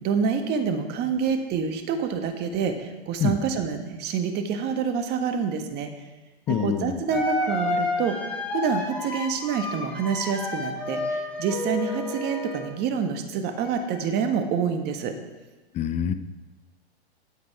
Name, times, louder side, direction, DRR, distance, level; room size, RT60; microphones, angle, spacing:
voice 1, 0.0-6.0 6.5-8.2 8.5-15.1, right 6 dB, 30° right, 6 dB, 1.5 m, -27 dB
voice 2, 6.5-6.9 15.7-16.1, left 9 dB, 20° left, 11 dB, 0.6 m, -25 dB
sound 1, 6.5-6.6 7.1-12.7 13.5-14.4, left 2 dB, 5° left, 2.3 m, -31 dB
14.5 x 8.1 x 4.9 m, 1.2 s
hypercardioid pair, 125°, 33 cm